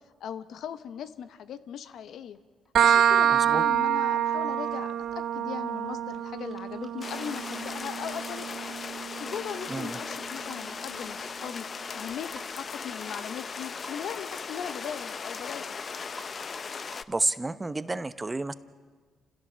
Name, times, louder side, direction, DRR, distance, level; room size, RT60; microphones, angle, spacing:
voice 1, 0.2-2.4 2.8-8.5 9.2-11.7 11.9-15.8, left 8 dB, 70° left, 12 dB, 0.9 m, -39 dB
sound 1, 2.1-2.4 2.7-4.6 4.8-4.9 6.4-7.5 7.9-8.5 8.8-9.0 9.3-9.7 10.0-10.1 10.5-10.6 10.9-11.0 11.8-17.1, right 1 dB, 5° left, 3.5 m, -48 dB
sound 2, 2.8-10.2, right 9 dB, 70° right, 0.6 m, -27 dB
voice 2, 3.3-3.6 9.7-10.0 17.1-18.5, right 2 dB, 20° right, 13 dB, 0.8 m, -30 dB
sound 3, 7.0-17.0, left 5 dB, 40° left, 0.6 m, -38 dB
29.0 x 16.0 x 7.4 m, 1.5 s
cardioid pair, 90°, 0 cm